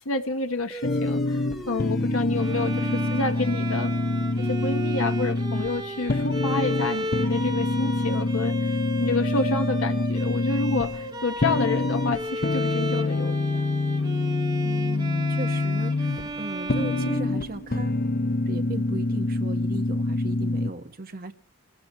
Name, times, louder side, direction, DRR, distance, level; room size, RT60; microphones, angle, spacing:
voice 1, 0.0-3.9 4.4-8.5 9.0-13.6, left 3 dB, 75° left, 6 dB, 1.3 m, -29 dB
sound 1, 0.7-5.6, right 1 dB, ahead, 2.1 m, -41 dB
sound 2, 0.8-20.7, left 2 dB, 45° left, 0.8 m, -26 dB
Bowed string instrument, 2.3-18.1, equal, 20° right, 2.3 m, -34 dB
voice 2, 14.6-18.0 18.5-21.3, right 2 dB, 40° right, 6 dB, 1.5 m, -37 dB
28.0 x 15.0 x 3.2 m, 0.40 s
head